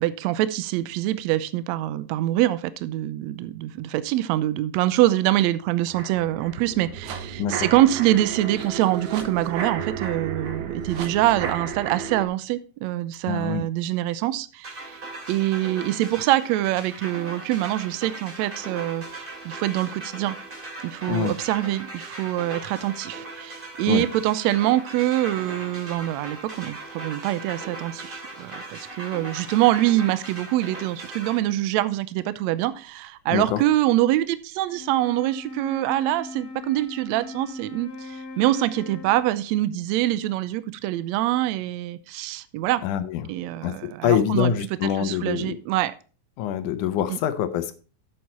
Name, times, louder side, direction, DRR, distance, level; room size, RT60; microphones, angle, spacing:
voice 1, 0.0-15.0 15.3-19.0 19.4-20.4 20.8-42.8 43.3-44.5 45.0-45.9 47.1-47.2, right 15 dB, 85° right, 1.6 m, -24 dB
sound 1, 5.9-12.3, right 6 dB, 70° right, 2.5 m, -33 dB
voice 2, 13.3-13.6 21.1-21.3 23.9-24.0 33.3-33.6 42.8-43.3 43.6-45.6 46.4-47.7, left 10 dB, 80° left, 2.1 m, -25 dB
sound 2, 14.6-31.4, right 2 dB, 20° right, 2.3 m, -39 dB
Wind instrument woodwind instrument, 34.7-39.5, left 2 dB, 45° left, 3.2 m, -39 dB
8.0 x 7.9 x 4.2 m
omnidirectional pair, 3.7 m